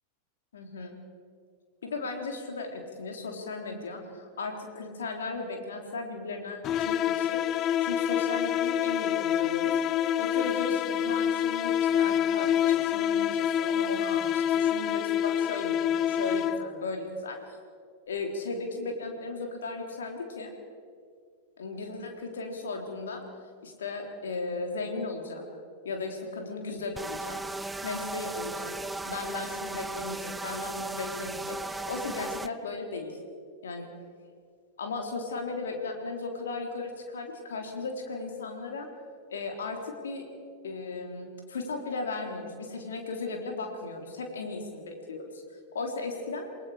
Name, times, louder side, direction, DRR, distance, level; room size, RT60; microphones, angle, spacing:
voice 1, 0.5-0.9 1.8-7.4 7.8-9.8 10.2-17.6 18.1-20.5 21.6-23.2 23.6-25.4 25.8-27.4 27.8-28.7 29.1-33.2 33.6-33.9 34.8-38.9 39.3-40.2 40.6-45.4 45.7-46.5, left 3 dB, 65° left, 2 dB, 3.5 m, -36 dB
sound 1, 6.6-16.9, left 10 dB, 35° left, 0.5 m, -27 dB
sound 2, 27.0-32.5, right 2 dB, 10° right, 0.6 m, -36 dB
28.5 x 20.5 x 5.0 m, 2.1 s
figure-of-eight pair, 90°, 0 cm